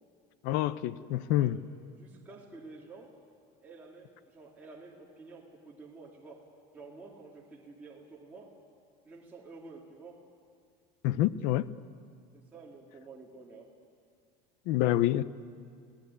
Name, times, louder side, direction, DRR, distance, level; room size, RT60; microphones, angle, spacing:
voice 1, 0.4-1.6 11.0-11.7 14.7-15.2, left 14 dB, 70° left, 0.8 m, -27 dB
voice 2, 1.0-1.6 1.9-3.1 3.6-6.4 6.7-8.5 9.0-10.2 12.5-13.7, right 3 dB, 10° right, 2.7 m, -50 dB
27.0 x 17.5 x 9.8 m
cardioid pair, 145°, 16 cm